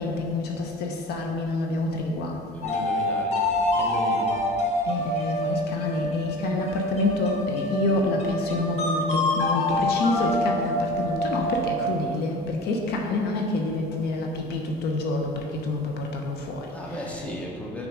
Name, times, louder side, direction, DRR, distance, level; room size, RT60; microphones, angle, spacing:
voice 1, 0.0-2.4 4.8-17.2, left 2 dB, 75° left, 2 dB, 0.7 m, -27 dB
sound 1, 2.6-12.1, left 1 dB, 40° left, 1.1 m, -26 dB
voice 2, 2.6-3.4 3.7-4.3 16.7-17.9, equal, 10° left, -2 dB, 1.1 m, -35 dB
6.2 x 3.7 x 4.9 m, 2.5 s
cardioid pair, 110°, 17 cm